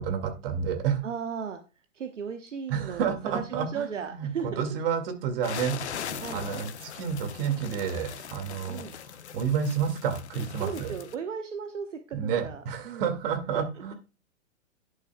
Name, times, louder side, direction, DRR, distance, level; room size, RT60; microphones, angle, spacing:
voice 1, 0.0-1.0 2.7-8.8 9.3-10.9 12.1-13.9, right 7 dB, 45° right, 7 dB, 2.1 m, -30 dB
voice 2, 1.0-4.6 6.2-6.5 8.7-9.0 10.6-13.1 13.5-13.9, right 6 dB, 65° right, 7 dB, 1.1 m, -36 dB
sound 1, 5.4-11.1, left 9 dB, 55° left, 1.0 m, -40 dB
11.0 x 9.5 x 2.2 m, 0.31 s
figure-of-eight pair, 110°, 39 cm